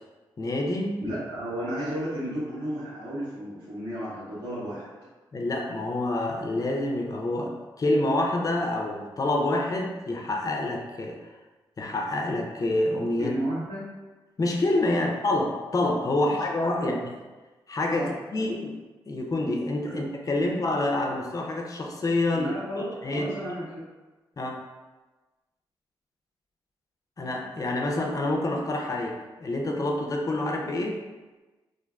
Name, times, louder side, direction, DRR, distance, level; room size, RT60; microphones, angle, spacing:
voice 1, 0.4-1.0 5.3-11.4 11.8-13.3 14.4-17.0 17.7-18.7 19.1-22.5 23.0-23.3 24.4-24.6 27.2-31.0, left 2 dB, 35° left, 1 dB, 0.5 m, -27 dB
voice 2, 1.0-4.9 13.2-13.8 14.9-15.1 16.2-16.3 16.7-17.1 17.9-18.5 19.9-20.0 22.3-23.8, equal, 90° right, -15 dB, 1.1 m, -33 dB
2.4 x 2.2 x 2.3 m, 1.2 s
supercardioid pair, 45°, 10 cm